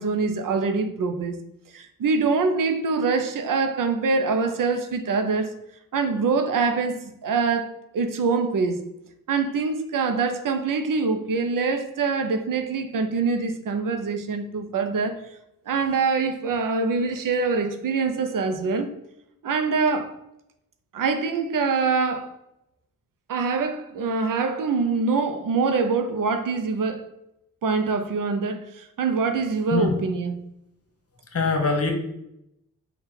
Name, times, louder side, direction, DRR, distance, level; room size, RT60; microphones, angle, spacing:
voice 1, 0.0-1.4 1.7-5.5 5.9-8.8 9.3-15.2 15.7-18.9 19.4-20.1 20.9-22.3 23.3-27.0 27.6-30.4, right 4 dB, 70° right, 0.6 m, -24 dB
voice 2, 31.3-31.9, left 4 dB, 45° left, 0.9 m, -22 dB
3.5 x 2.4 x 4.5 m
cardioid pair, 70°, 34 cm